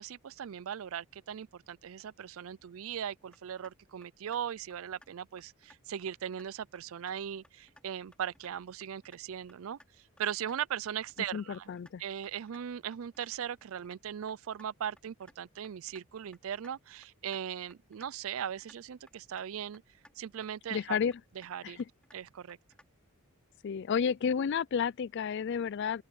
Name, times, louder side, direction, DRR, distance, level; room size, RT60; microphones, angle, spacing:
voice 1, 0.0-9.8 10.2-11.7 12.0-19.8 20.2-21.0 21.4-21.8 22.1-22.6, right 9 dB, 65° right, 0.4 m, -39 dB
sound 1, 3.3-3.7 4.0-4.4 4.7-5.1 5.4-5.8 6.1-6.5 6.8-7.2 7.4-7.8 8.1-8.5 8.8-9.2 9.5-9.9 10.2-10.6 10.9-11.3 11.5-11.9 12.2-12.6 12.9-13.3 13.6-14.0 14.3-14.7 15.0-15.4 15.6-16.0 16.3-16.7 17.0-17.4 17.7-18.1 18.4-18.8 19.1-19.5 19.7-20.1 20.4-20.8 21.1-21.5 21.8-22.2 22.5-22.9, left 1 dB, 5° left, 2.7 m, -59 dB
voice 2, 11.3-12.0 20.7-21.2 21.6-21.9 23.6-26.0, left 7 dB, 50° left, 0.3 m, -31 dB
open air
head